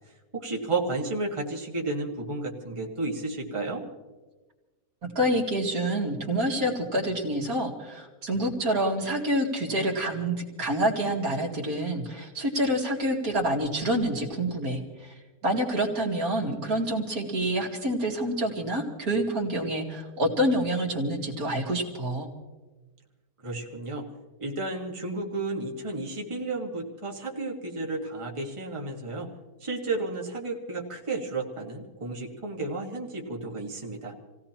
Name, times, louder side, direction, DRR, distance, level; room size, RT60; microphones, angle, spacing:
voice 1, 0.3-3.8 23.4-24.1 24.4-29.3 29.6-34.1, right 3 dB, 20° right, -1 dB, 1.7 m, -32 dB
voice 2, 5.2-15.1 15.4-22.3, right 1 dB, 70° right, -1 dB, 2.6 m, -27 dB
28.0 x 17.0 x 2.9 m, 1.2 s
omnidirectional pair, 1.6 m